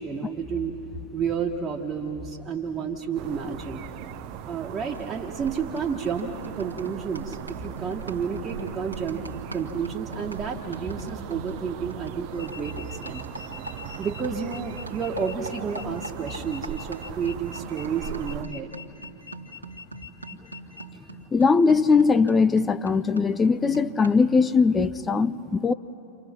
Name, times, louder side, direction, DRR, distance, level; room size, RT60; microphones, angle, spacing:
voice 1, 0.0-3.8 4.4-9.3 9.5-13.2 14.0-18.7, right 6 dB, 20° right, 1.5 m, -31 dB
sound 1, 3.1-18.4, right 11 dB, 45° right, 0.7 m, -39 dB
sound 2, 5.0-5.2 5.5-14.6 14.9-24.4, right 2 dB, 80° right, 1.6 m, -43 dB
sound 3, 12.3-20.8, left 5 dB, 85° left, 1.2 m, -44 dB
voice 2, 21.3-25.7, left 4 dB, 15° left, 0.5 m, -20 dB
30.0 x 26.5 x 6.0 m
figure-of-eight pair, 90°, 0 cm